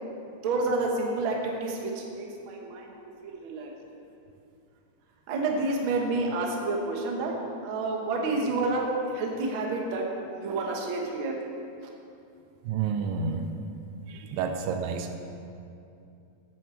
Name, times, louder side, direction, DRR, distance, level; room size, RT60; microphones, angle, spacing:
voice 1, 0.4-2.9 3.2-3.7 5.3-7.3 7.6-10.1 10.3-11.4, right 3 dB, 60° right, 0 dB, 1.3 m, -29 dB
voice 2, 12.7-13.4 14.3-15.2, right 6 dB, 80° right, 6 dB, 2.3 m, -29 dB
10.0 x 7.3 x 7.0 m, 2.6 s
omnidirectional pair, 4.0 m